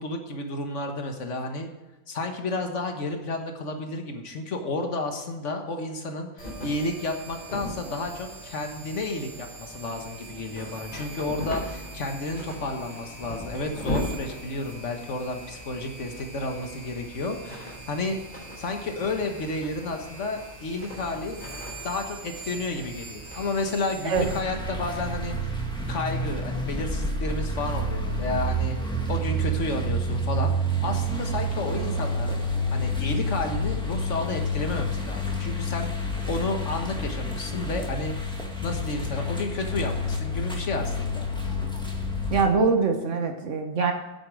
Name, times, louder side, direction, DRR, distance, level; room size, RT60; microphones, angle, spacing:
voice 1, 0.0-1.7 2.1-18.2 18.6-21.5 21.8-25.6 25.9-28.8 29.1-30.5 30.8-32.4 32.7-41.3, left 2 dB, 90° left, 4 dB, 1.7 m, -31 dB
sound 1, 6.4-24.4, equal, 40° left, 4.8 m, -38 dB
sound 2, 24.1-42.5, equal, 5° left, 1.9 m, -29 dB
voice 2, 42.3-43.9, right 4 dB, 85° right, 4 dB, 1.5 m, -23 dB
9.7 x 8.7 x 6.2 m, 1.1 s
omnidirectional pair, 1.2 m